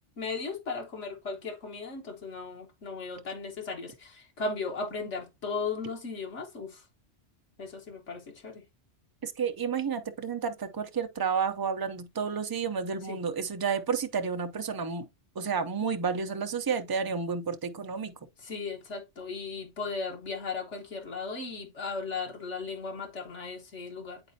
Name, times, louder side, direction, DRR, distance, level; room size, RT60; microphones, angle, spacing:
voice 1, 0.2-6.8 7.6-8.6 13.1-13.2 18.4-24.2, left 4 dB, 90° left, 1.6 m, -36 dB
voice 2, 9.2-15.1 15.4-18.2, right 6 dB, 30° right, 0.4 m, -31 dB
8.9 x 4.1 x 2.7 m
omnidirectional pair, 1.2 m